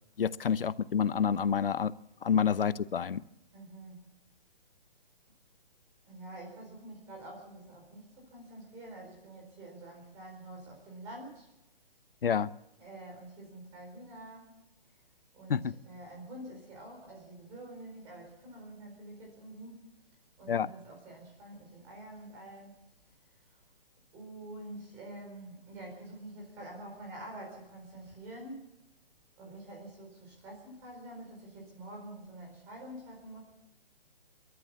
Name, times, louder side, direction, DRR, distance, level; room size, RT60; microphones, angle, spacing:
voice 1, 0.2-1.9 2.2-3.2 12.2-12.5 15.5-15.7 20.5-20.7, left 7 dB, 70° left, 16 dB, 0.9 m, -28 dB
voice 2, 3.5-4.0 6.0-11.5 12.8-14.5 15.3-19.9 20.4-22.7 23.5-23.6 24.1-28.7 29.4-33.4, right 1 dB, 10° right, 0 dB, 4.4 m, -47 dB
27.0 x 13.5 x 7.2 m, 0.84 s
hypercardioid pair, 180°, 29 cm